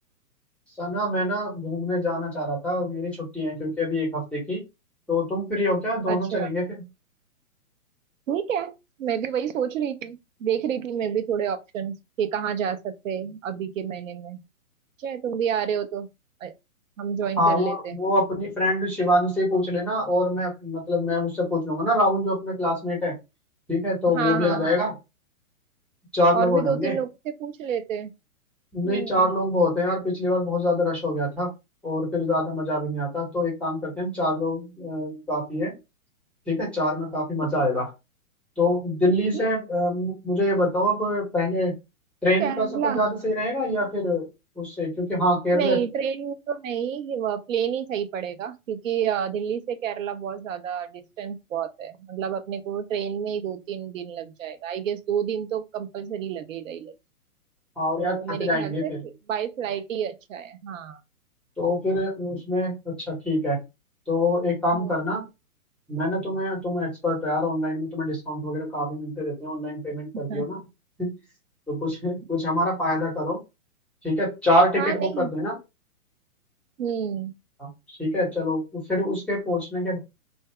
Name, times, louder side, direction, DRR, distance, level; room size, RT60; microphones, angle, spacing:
voice 1, 0.8-4.6 5.1-6.6 17.4-23.2 23.7-24.9 26.1-26.9 28.7-31.5 31.8-35.8 36.5-37.9 38.6-41.7 42.2-44.3 44.6-45.8 57.8-59.0 61.6-62.7 63.1-63.6 64.1-65.3 65.9-70.6 71.0-71.1 71.7-73.4 74.0-75.5 77.6-77.7 78.0-80.0, left 1 dB, 5° left, 1.0 m, -25 dB
voice 2, 6.1-6.5 8.3-14.4 15.0-16.1 16.4-16.5 17.0-18.0 24.1-24.9 26.3-28.1 28.8-29.3 39.3-39.5 42.4-43.1 45.5-56.9 58.0-61.0 64.7-64.9 70.1-70.6 74.8-75.3 76.8-77.3, right 8 dB, 65° right, 0.7 m, -29 dB
2.6 x 2.4 x 3.3 m
hypercardioid pair, 135°, 43 cm